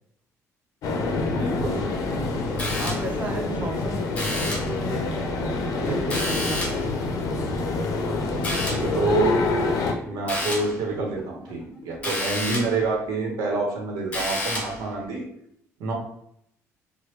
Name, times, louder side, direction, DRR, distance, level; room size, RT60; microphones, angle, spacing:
sound 1, 0.8-9.9, left 3 dB, 70° left, 0.5 m, -26 dB
voice 1, 1.3-1.9 3.5-3.8 8.7-9.3 10.1-15.2 15.8-15.9, right 3 dB, 85° right, 0 dB, 0.8 m, -27 dB
voice 2, 2.4-6.6, right 2 dB, 25° right, 1 dB, 0.6 m, -35 dB
sound 2, 2.6-3.3 4.1-4.8 6.1-6.9 8.4-9.0 10.3-10.8 12.0-12.8 14.1-14.9, left 1 dB, 20° left, 0.8 m, -30 dB
sound 3, 5.8-12.2, equal, ahead, 1.4 m, -45 dB
3.1 x 2.1 x 3.1 m, 0.72 s
cardioid pair, 115°, 6 cm